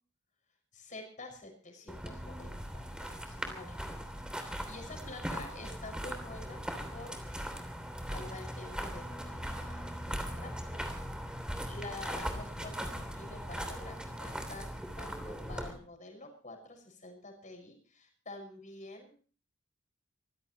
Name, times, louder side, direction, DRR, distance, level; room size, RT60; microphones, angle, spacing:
voice 1, 0.7-3.9 4.3-6.6 6.9-7.5 8.1-11.0 11.3-19.2, left 2 dB, 40° left, 4 dB, 6.3 m, -48 dB
sound 1, 1.9-15.7, equal, 5° right, 3.0 m, -39 dB
25.5 x 15.5 x 3.2 m, 0.41 s
head